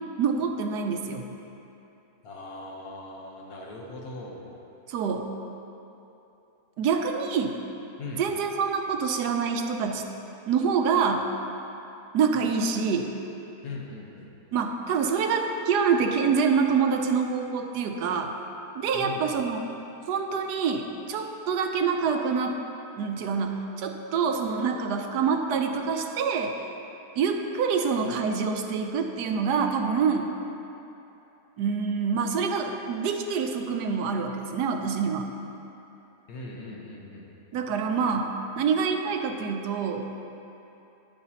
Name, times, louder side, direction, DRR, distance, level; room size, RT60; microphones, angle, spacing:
voice 1, 0.2-1.3 4.9-5.3 6.8-7.6 8.2-10.0 10.5-11.3 12.1-13.1 14.5-18.3 18.7-19.6 20.1-22.6 23.0-26.7 27.2-30.3 31.6-35.3 37.5-40.1, right 5 dB, 80° right, 5 dB, 1.2 m, -26 dB
voice 2, 2.2-4.5 8.0-8.2 13.6-14.3 18.9-19.3 36.3-37.3, left 2 dB, 65° left, -1 dB, 1.5 m, -39 dB
11.0 x 8.8 x 2.9 m, 2.9 s
omnidirectional pair, 1.8 m